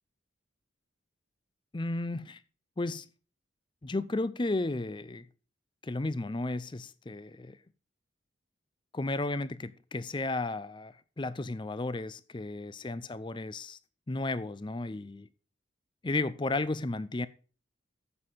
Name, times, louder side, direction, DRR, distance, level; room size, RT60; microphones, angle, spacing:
voice 1, 1.7-2.4 2.8-3.1 3.8-5.3 5.8-7.6 8.9-13.8 14.1-15.3 16.0-17.3, left 2 dB, 25° left, 0.5 m, -33 dB
9.7 x 7.6 x 4.1 m
head